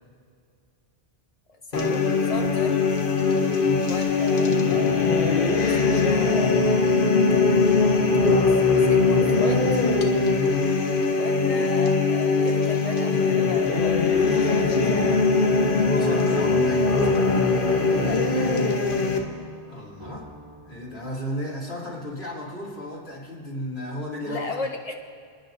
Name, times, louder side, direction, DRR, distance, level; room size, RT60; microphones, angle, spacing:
sound 1, 1.7-19.2, left 4 dB, 55° left, 1.2 m, -21 dB
voice 1, 1.7-2.8 3.8-6.9 8.2-9.7 10.9-15.4 17.7-18.8 24.3-25.0, left 2 dB, 35° left, 2 dB, 1.4 m, -36 dB
voice 2, 3.6-3.9 15.8-17.9 18.3-18.6 19.7-20.3 20.6-24.5, left 1 dB, 80° left, -5 dB, 3.2 m, -34 dB
sound 2, 16.4-18.8 19.1-21.4, left 1 dB, 25° right, 1.8 m, -42 dB
29.5 x 10.0 x 2.6 m, 2.2 s
omnidirectional pair, 1.0 m